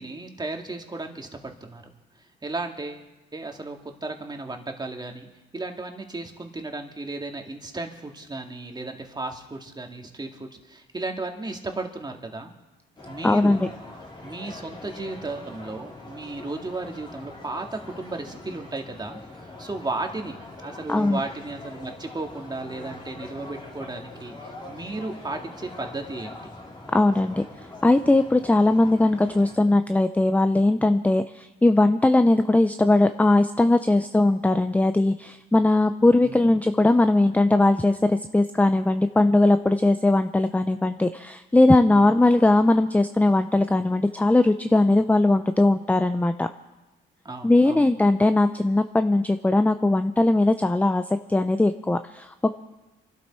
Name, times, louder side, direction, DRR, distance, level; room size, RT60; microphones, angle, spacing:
voice 1, 0.0-1.9 2.4-3.0 3.3-5.3 5.5-12.5 13.1-13.7 14.2-19.2 19.6-20.3 20.6-26.4 36.2-36.4 41.9-42.2 47.2-47.9, right 2 dB, 20° right, 3 dB, 2.1 m, -34 dB
sound 1, 13.0-29.5, left 2 dB, 20° left, 3.1 m, -43 dB
voice 2, 13.2-13.6 20.9-21.2 26.9-27.4 27.8-46.5 47.4-51.0 51.3-52.5, left 2 dB, 5° left, 9 dB, 0.5 m, -20 dB
26.0 x 12.0 x 4.4 m, 1.1 s
cardioid pair, 90°, 20 cm